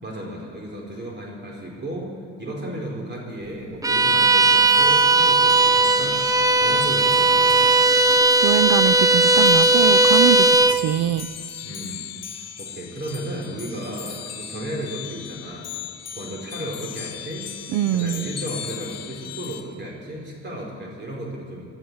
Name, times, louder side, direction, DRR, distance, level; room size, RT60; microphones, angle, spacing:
voice 1, 0.0-2.1 2.4-8.0 10.6-10.8 11.6-12.0 12.6-15.7 16.2-17.5 17.9-21.7, right 1 dB, 35° right, -1 dB, 4.1 m, -34 dB
Bowed string instrument, 3.8-10.8, right 2 dB, 10° right, 0.5 m, -17 dB
sound 1, 4.4-19.6, left 9 dB, 55° left, 1.3 m, -37 dB
voice 2, 8.4-11.3 17.7-18.3, right 12 dB, 80° right, 15 dB, 0.5 m, -23 dB
19.0 x 12.5 x 4.7 m, 2.2 s
cardioid pair, 90°, 30 cm